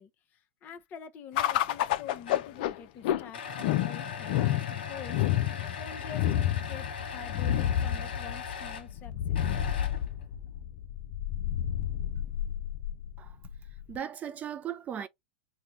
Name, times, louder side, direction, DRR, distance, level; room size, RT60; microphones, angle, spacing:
voice 1, 0.0-5.3 5.8-9.4, left 7 dB, 35° left, 0.8 m, -46 dB
sound 1, 1.4-14.0, left 11 dB, 60° left, 0.5 m, -30 dB
sound 2, 2.3-2.6 3.3-8.9 9.3-10.2, left 5 dB, 75° left, 1.2 m, -40 dB
voice 2, 13.7-15.1, right 9 dB, 30° right, 0.4 m, -38 dB
5.3 x 2.2 x 3.0 m
hypercardioid pair, 110°, 5 cm